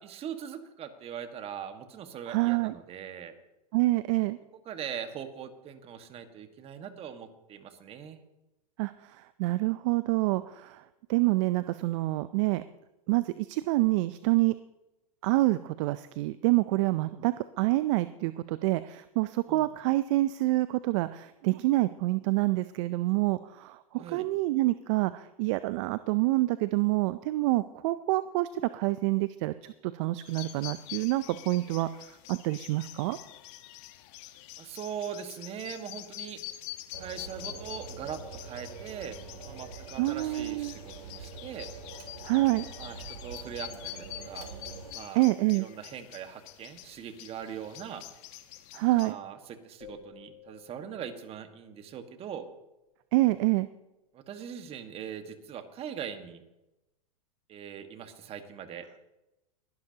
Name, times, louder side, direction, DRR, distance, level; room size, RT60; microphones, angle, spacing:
voice 1, 0.0-3.3 4.6-8.2 19.5-19.7 24.0-24.3 34.6-36.4 37.0-39.2 39.4-41.7 42.8-44.5 44.9-45.2 45.5-48.0 49.0-52.4 54.1-56.4 57.5-58.9, right 8 dB, 30° right, 8 dB, 1.5 m, -41 dB
voice 2, 2.3-2.7 3.7-4.4 8.8-10.8 11.1-12.6 13.1-14.5 15.2-33.2 40.0-40.7 42.2-42.7 45.2-45.7 48.7-49.2 53.1-53.7, right 19 dB, 50° right, 14 dB, 0.5 m, -27 dB
sound 1, 30.3-49.1, left 15 dB, 50° left, 1.1 m, -46 dB
sound 2, 36.9-44.9, right 5 dB, 80° right, 2.7 m, -45 dB
sound 3, 49.8-52.4, left 10 dB, 85° left, 3.8 m, -54 dB
21.0 x 11.5 x 2.8 m, 0.96 s
hypercardioid pair, 110°, 19 cm